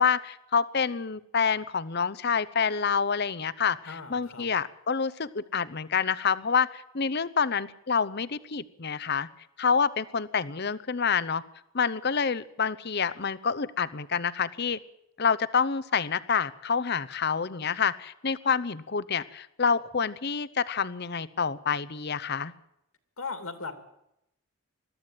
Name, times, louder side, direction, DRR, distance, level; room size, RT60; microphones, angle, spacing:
voice 1, 0.0-3.8 4.1-9.3 9.6-11.4 11.7-14.8 15.2-22.5, left 6 dB, 50° left, 16 dB, 0.8 m, -27 dB
voice 2, 3.8-4.5 23.2-23.7, left 4 dB, 75° left, 9 dB, 2.7 m, -37 dB
21.0 x 14.0 x 9.0 m, 0.82 s
head